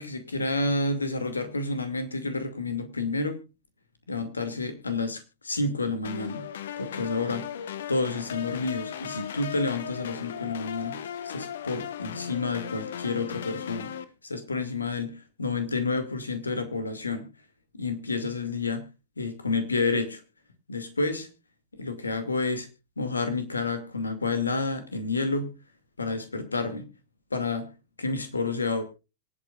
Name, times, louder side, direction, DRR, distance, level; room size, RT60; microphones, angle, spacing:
voice 1, 0.0-3.4 4.1-6.5 6.8-7.5 7.9-13.9 14.2-17.3 17.7-18.9 19.2-20.2 20.7-21.3 21.7-22.7 23.0-25.5 26.0-26.9 27.3-27.7 28.0-28.8, left 3 dB, 75° left, 9 dB, 2.5 m, -29 dB
sound 1, 6.0-14.0, left 9 dB, 60° left, 1.2 m, -37 dB
26.0 x 8.8 x 2.5 m, 0.28 s
figure-of-eight pair, 90°, 0 cm